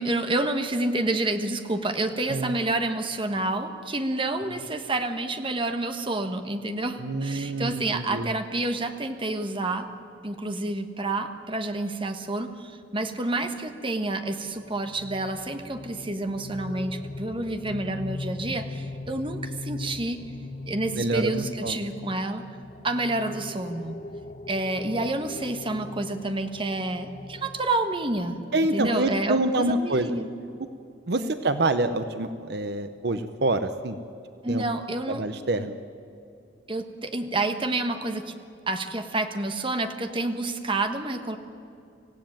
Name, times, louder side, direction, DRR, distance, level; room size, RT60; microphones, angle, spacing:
voice 1, 0.0-9.9 10.2-20.2 20.7-22.4 22.8-24.0 24.5-28.4 28.7-30.3 31.2-31.3 34.4-35.2 36.7-38.3 38.7-41.4, right 2 dB, 25° right, 7 dB, 1.3 m, -29 dB
voice 2, 7.0-8.3 21.0-21.8 28.5-30.1 31.1-34.0 34.5-34.6 35.1-35.8, right 2 dB, 60° right, 10 dB, 0.8 m, -26 dB
sound 1, 14.5-29.2, left 2 dB, 40° left, 0.9 m, -40 dB
25.5 x 16.0 x 9.1 m, 2.6 s
head